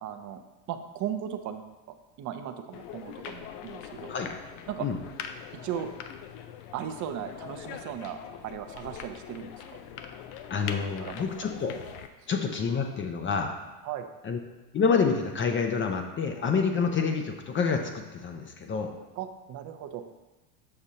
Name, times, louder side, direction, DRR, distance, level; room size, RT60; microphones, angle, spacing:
voice 1, 0.0-0.4 0.7-1.7 2.2-4.1 4.7-4.9 5.5-5.9 6.7-9.8 10.5-11.2 13.8-14.1 19.2-20.1, right 9 dB, 40° right, 7 dB, 0.6 m, -37 dB
sound 1, 2.7-12.1, left 8 dB, 70° left, 0.7 m, -42 dB
voice 2, 10.5-11.8 12.3-13.5 14.2-14.4 14.7-18.9, left 5 dB, 25° left, 4 dB, 0.5 m, -28 dB
6.6 x 5.9 x 2.8 m, 1.1 s
supercardioid pair, 110°, 46 cm